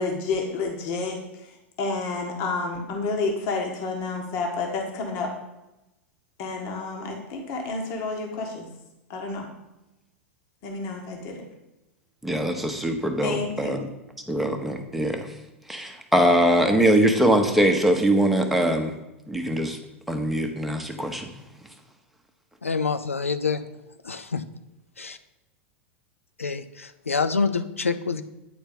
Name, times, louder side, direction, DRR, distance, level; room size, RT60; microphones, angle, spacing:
voice 1, 0.0-5.3 6.4-8.7 9.1-9.4 10.6-11.4 13.2-13.9, left 3 dB, 45° left, 1 dB, 1.5 m, -30 dB
voice 2, 12.2-13.9 14.3-15.3 15.7-19.0 19.3-19.8 20.1-21.3, right 1 dB, ahead, 3 dB, 1.0 m, -22 dB
voice 3, 22.6-23.7 24.0-24.4 25.0-25.2 26.4-28.2, left 5 dB, 90° left, 11 dB, 0.5 m, -26 dB
9.1 x 4.3 x 5.4 m, 0.96 s
figure-of-eight pair, 95°, 7 cm